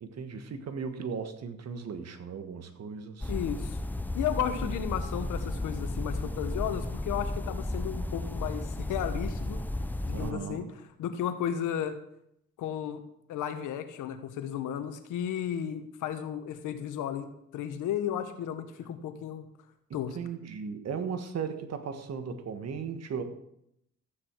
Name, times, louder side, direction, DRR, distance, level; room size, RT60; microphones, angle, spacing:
voice 1, 0.0-3.3 4.6-4.7 10.1-10.7 20.1-23.2, right 6 dB, 60° right, 8 dB, 1.6 m, -37 dB
sound 1, 3.2-10.3, left 1 dB, 5° left, 0.6 m, -33 dB
voice 2, 3.3-3.8 4.1-9.6 10.0-10.6 11.0-12.0 12.6-13.0 13.3-17.3 17.5-19.4 19.9-20.2, left 9 dB, 85° left, 9 dB, 1.4 m, -34 dB
14.0 x 8.9 x 4.7 m, 0.76 s
cardioid pair, 90°, 30 cm